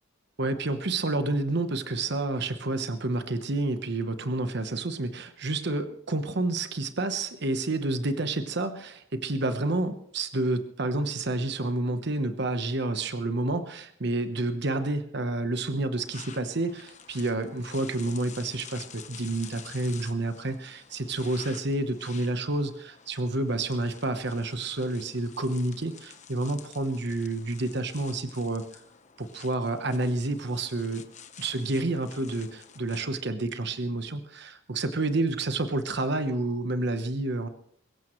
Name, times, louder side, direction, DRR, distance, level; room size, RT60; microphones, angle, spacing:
voice 1, 0.4-28.6 29.2-31.0 31.4-37.5, right 2 dB, 60° right, 9 dB, 1.1 m, -29 dB
sound 1, 16.0-33.1, left 7 dB, 35° left, 1.1 m, -50 dB
23.5 x 15.0 x 3.2 m, 0.65 s
head